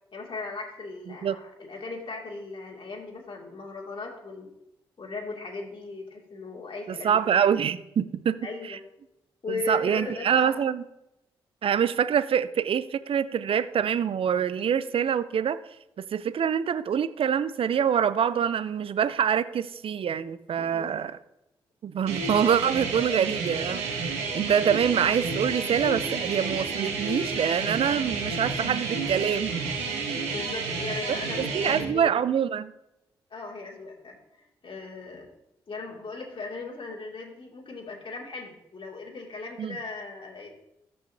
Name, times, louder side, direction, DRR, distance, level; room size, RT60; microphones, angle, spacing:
voice 1, 0.1-4.5 5.0-7.5 8.4-8.8 9.4-10.6 20.6-21.1 30.2-32.2 33.3-35.3 35.7-40.5, left 3 dB, 50° left, -1 dB, 2.4 m, -37 dB
voice 2, 6.9-8.4 8.7-8.8 9.5-10.8 11.6-15.6 16.1-21.1 21.8-23.9 24.3-29.5 29.9-30.2 31.3-32.7 39.6-39.8, right 8 dB, 55° right, 15 dB, 0.5 m, -25 dB
sound 1, 22.1-31.8, right 4 dB, 85° right, 1.3 m, -30 dB
14.0 x 5.5 x 2.8 m, 0.86 s
hypercardioid pair, 45°, 11 cm